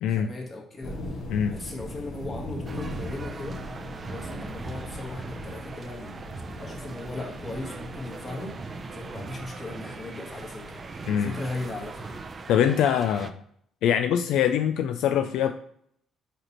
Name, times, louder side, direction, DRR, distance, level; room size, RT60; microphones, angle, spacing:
voice 1, 0.1-1.1 1.5-3.6 4.0-6.2 6.6-10.8 11.2-12.2, left 2 dB, 35° left, 0 dB, 1.6 m, -37 dB
sound 1, 0.8-12.3, left 1 dB, 60° left, 1.5 m, -40 dB
sound 2, 2.7-13.3, right 4 dB, 30° right, 0.5 m, -40 dB
voice 2, 12.5-13.4 13.8-15.5, left 9 dB, 80° left, 8 dB, 0.3 m, -23 dB
5.3 x 4.4 x 4.2 m, 0.67 s
cardioid pair, 105°, 0 cm